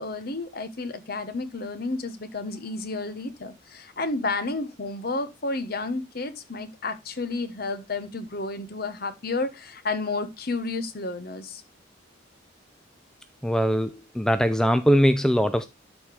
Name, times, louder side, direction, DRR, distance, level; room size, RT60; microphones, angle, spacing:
voice 1, 0.0-11.6, left 3 dB, 50° left, 1.1 m, -31 dB
voice 2, 13.4-15.7, equal, 5° left, 0.3 m, -21 dB
12.0 x 4.4 x 3.3 m
head